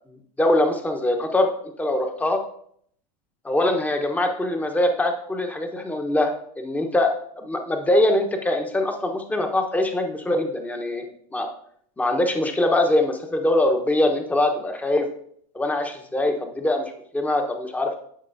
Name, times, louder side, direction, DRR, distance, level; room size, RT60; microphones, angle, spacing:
voice 1, 0.4-1.5 1.8-2.4 3.4-11.0 11.3-11.5 12.0-15.1 15.5-18.0, left 1 dB, 10° left, 4 dB, 1.1 m, -23 dB
11.5 x 5.3 x 2.7 m, 0.64 s
supercardioid pair, 115°, 19 cm